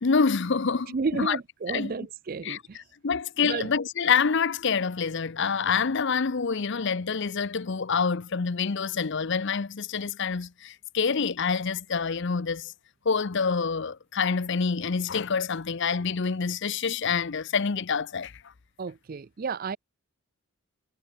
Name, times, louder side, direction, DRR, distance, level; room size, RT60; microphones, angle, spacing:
voice 1, 0.0-1.4 1.7-1.9 2.4-12.7 13.0-18.3, left 5 dB, 55° left, 0.6 m, -27 dB
voice 2, 0.9-2.8 3.4-3.7 18.8-19.8, right 4 dB, 40° right, 0.4 m, -32 dB
head